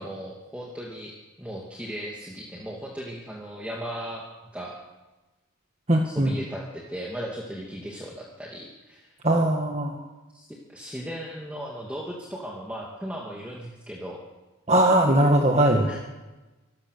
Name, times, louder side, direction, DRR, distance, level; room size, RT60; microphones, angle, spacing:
voice 1, 0.0-4.8 6.0-9.2 10.3-14.2 15.8-16.0, equal, 5° right, -3 dB, 2.6 m, -37 dB
voice 2, 5.9-6.3 9.2-10.0 14.7-15.9, right 1 dB, 30° right, 2 dB, 1.6 m, -20 dB
26.0 x 17.5 x 6.8 m, 1.2 s
head